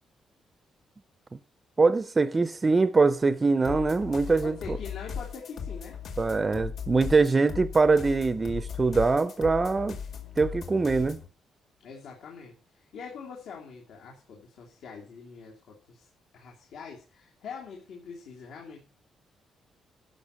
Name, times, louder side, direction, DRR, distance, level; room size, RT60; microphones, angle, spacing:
voice 1, 1.8-4.8 6.2-10.0 10.4-11.2, right 3 dB, 20° right, 0.6 m, -23 dB
sound 1, 3.6-11.3, left 7 dB, 55° left, 2.1 m, -38 dB
voice 2, 4.4-6.0 11.8-16.1 16.3-18.8, left 5 dB, 75° left, 2.8 m, -44 dB
12.0 x 5.8 x 6.9 m
cardioid pair, 165°, 0 cm